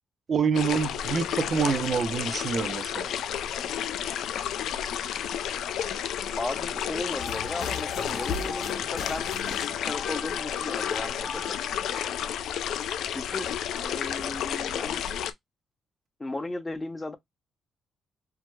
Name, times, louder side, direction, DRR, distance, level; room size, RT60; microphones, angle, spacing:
voice 1, 0.3-3.1, right 6 dB, 40° right, 0.6 m, -26 dB
sound 1, 0.5-15.3, left 9 dB, 90° left, 0.3 m, -31 dB
voice 2, 6.4-11.6 13.1-13.5 13.8-15.0 16.2-17.2, left 2 dB, 15° left, 0.6 m, -36 dB
sound 2, 7.2-12.3, left 5 dB, 60° left, 0.6 m, -38 dB
4.6 x 2.1 x 2.2 m
cardioid pair, 145°, 0 cm